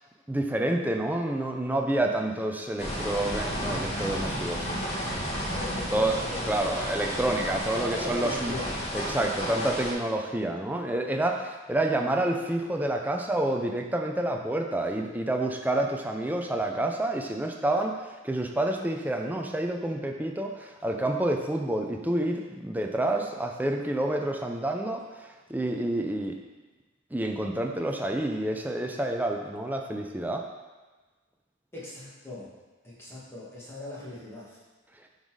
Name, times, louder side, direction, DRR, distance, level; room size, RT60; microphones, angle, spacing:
voice 1, 0.3-4.6 5.9-6.2 6.5-8.5 8.9-18.0 18.2-25.0 25.5-26.4 27.1-30.4, right 1 dB, 10° right, 2 dB, 0.5 m, -28 dB
sound 1, 2.8-9.9, equal, 30° left, 1.4 m, -32 dB
voice 2, 5.5-6.4 7.8-8.7 31.7-32.5 32.8-34.6, left 2 dB, 10° left, -7 dB, 1.7 m, -39 dB
9.1 x 4.0 x 4.8 m, 1.3 s
head